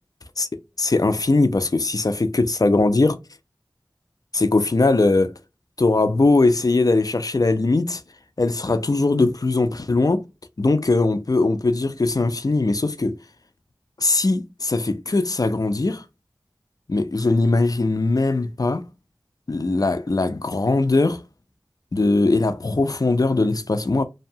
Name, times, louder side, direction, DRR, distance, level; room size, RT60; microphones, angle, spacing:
voice 1, 0.8-3.2 4.3-5.3 5.8-8.0 8.4-10.2 10.6-13.2 14.0-16.0 16.9-18.8 19.5-21.2 21.9-24.0, left 3 dB, 55° left, 0.4 m, -20 dB
2.7 x 2.2 x 2.6 m
wide cardioid pair, 40°, 8 cm